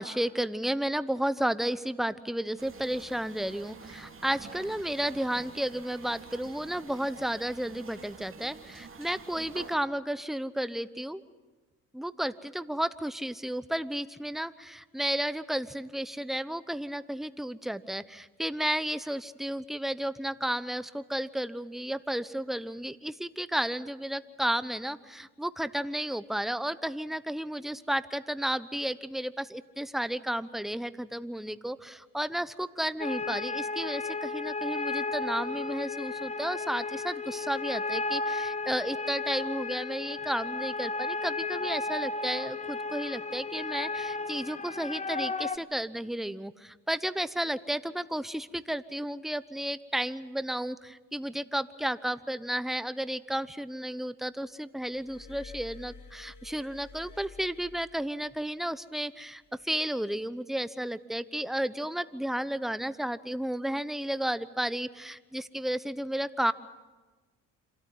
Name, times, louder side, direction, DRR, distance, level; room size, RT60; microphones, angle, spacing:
voice 1, 0.0-11.2 11.9-66.5, right 1 dB, ahead, 14 dB, 0.9 m, -32 dB
sound 1, 2.6-9.8, right 5 dB, 35° right, 2.4 m, -48 dB
sound 2, 33.0-45.6, left 3 dB, 20° left, 1.2 m, -34 dB
Glass, 54.9-58.5 59.4-59.6, left 5 dB, 50° left, 1.8 m, -50 dB
26.5 x 13.5 x 9.4 m, 1.3 s
supercardioid pair, 65°, 38 cm